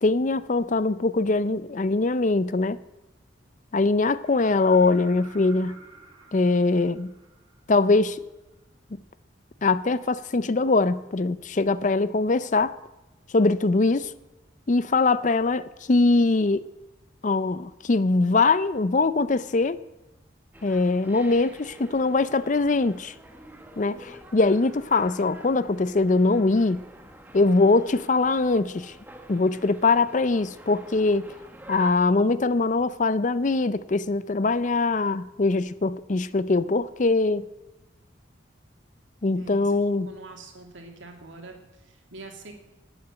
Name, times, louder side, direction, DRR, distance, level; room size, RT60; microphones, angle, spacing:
voice 1, 0.0-2.8 3.7-5.8 6.3-7.1 7.7-8.2 9.6-12.7 13.3-14.1 14.7-16.6 17.2-19.8 20.6-23.1 23.8-26.8 27.3-28.9 29.3-31.3 31.7-37.5 39.2-40.1, left 3 dB, 40° left, 0.5 m, -22 dB
sound 1, 4.2-8.0 9.9-10.0, right 3 dB, 25° right, 2.9 m, -50 dB
sound 2, 20.5-31.9, right 1 dB, 10° right, 1.2 m, -47 dB
voice 2, 39.4-39.8 40.1-42.5, right 3 dB, 75° right, 2.6 m, -44 dB
12.0 x 8.3 x 9.3 m
head